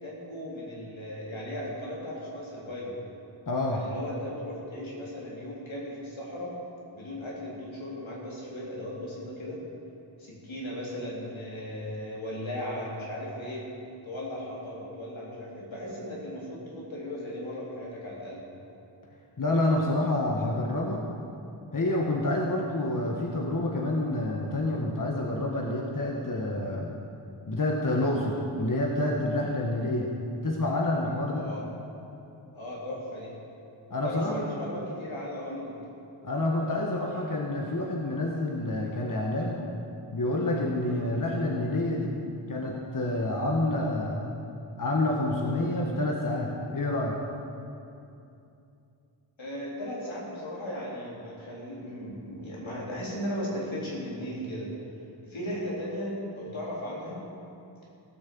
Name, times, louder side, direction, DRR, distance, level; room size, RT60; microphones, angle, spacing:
voice 1, 0.0-2.9 3.7-6.5 6.9-9.6 10.2-13.6 14.0-18.4 31.3-31.7 32.5-33.4 34.0-35.8 49.4-54.7 55.2-57.2, equal, 80° left, -5 dB, 3.8 m, -37 dB
voice 2, 3.5-3.8 19.4-21.0 21.7-26.9 27.5-30.1 30.4-31.5 33.9-34.4 36.2-39.6 40.1-42.1 42.5-44.3 44.8-47.1, left 1 dB, 45° left, -1 dB, 1.5 m, -28 dB
17.0 x 6.4 x 7.7 m, 2.7 s
cardioid pair, 50°, 46 cm